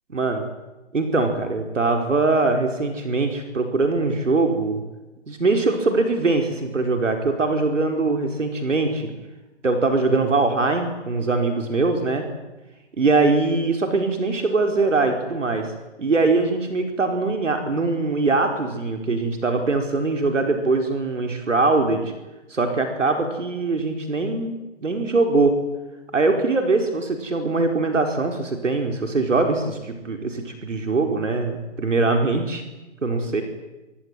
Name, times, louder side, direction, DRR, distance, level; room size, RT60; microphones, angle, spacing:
voice 1, 0.1-0.5 0.9-4.8 5.3-9.1 9.6-12.3 13.0-15.7 16.0-22.1 22.5-25.6 26.1-32.6 33.0-33.4, right 3 dB, 85° right, 4 dB, 4.7 m, -22 dB
25.5 x 20.0 x 9.3 m, 1.1 s
hypercardioid pair, 140°, 36 cm